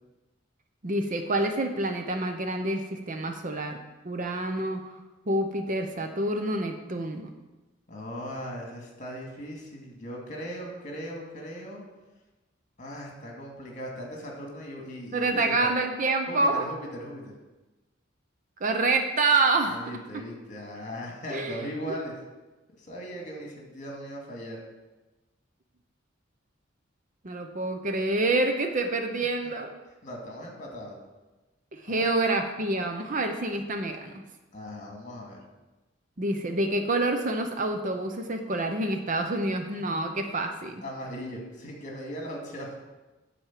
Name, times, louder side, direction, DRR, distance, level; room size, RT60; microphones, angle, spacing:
voice 1, 0.8-3.8 4.0-4.8 5.3-7.3 15.1-16.6 18.6-19.8 21.3-21.6 21.8-21.9 27.2-29.7 31.7-34.2 36.2-40.8, right 2 dB, 40° right, 5 dB, 0.8 m, -27 dB
voice 2, 7.9-11.8 12.8-15.7 16.3-17.3 19.7-22.1 22.8-24.6 30.0-31.0 31.9-32.0 34.5-35.4 40.8-42.7, equal, 40° left, -1 dB, 2.2 m, -38 dB
10.0 x 4.4 x 7.4 m, 1.1 s
head